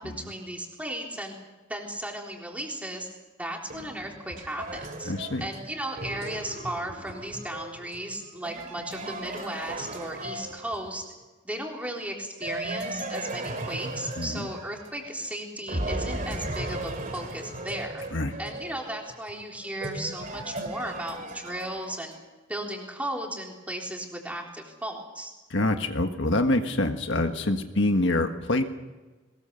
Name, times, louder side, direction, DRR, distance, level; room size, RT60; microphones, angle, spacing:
voice 1, 0.0-1.3 1.7-3.1 3.4-5.1 5.4-11.0 11.4-18.0 18.4-22.1 22.5-25.3, right 1 dB, 5° right, 0 dB, 3.6 m, -35 dB
sound 1, 3.7-11.1 12.4-15.3 15.7-22.1, right 1 dB, 40° right, 2.7 m, -37 dB
voice 2, 5.0-5.4 14.2-14.5 18.1-18.3 25.5-28.6, left 2 dB, 60° left, 6 dB, 1.6 m, -25 dB
22.0 x 20.5 x 6.9 m, 1.2 s
head